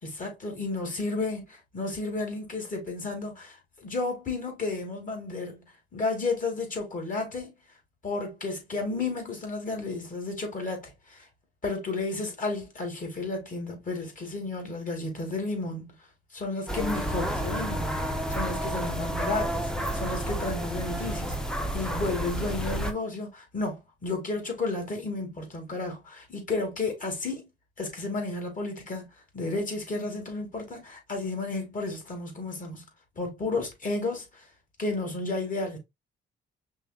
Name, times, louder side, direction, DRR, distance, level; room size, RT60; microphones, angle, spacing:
voice 1, 0.0-5.7 5.9-7.5 8.0-11.3 11.6-15.9 16.3-27.5 27.8-29.1 29.3-32.9 33.2-34.5 34.8-35.8, left 3 dB, 40° left, 2.4 m, -32 dB
sound 1, 16.7-22.9, equal, 5° left, 0.8 m, -30 dB
5.4 x 3.3 x 2.3 m
cardioid pair, 90°, 20 cm